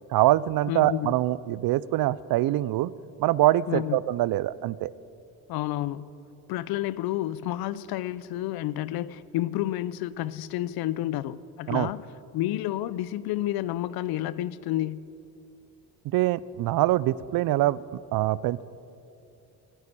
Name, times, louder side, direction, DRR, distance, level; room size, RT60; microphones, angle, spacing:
voice 1, 0.1-2.9 3.2-4.9 11.7-11.9 16.1-18.6, right 15 dB, 65° right, 20 dB, 0.5 m, -24 dB
voice 2, 0.7-1.1 3.7-4.0 5.5-6.1 6.5-12.0 12.3-15.1, left 14 dB, 70° left, 18 dB, 0.6 m, -30 dB
15.0 x 9.0 x 8.6 m, 2.7 s
supercardioid pair, 85°, 38 cm